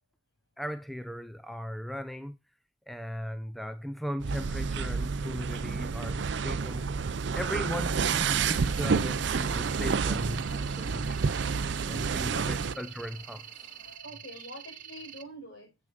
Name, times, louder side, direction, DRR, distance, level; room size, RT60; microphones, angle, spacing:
voice 1, 0.6-2.4 2.9-6.9 7.3-11.3 11.9-13.7, equal, ahead, 0.4 m, -38 dB
sound 1, 4.2-12.8, right 5 dB, 60° right, 0.5 m, -29 dB
sound 2, 6.6-14.0, equal, 20° left, 3.3 m, -57 dB
sound 3, 8.4-15.2, right 10 dB, 40° right, 1.1 m, -46 dB
voice 2, 12.0-12.9 13.6-15.8, equal, 60° left, 6.0 m, -46 dB
8.3 x 7.1 x 5.1 m
head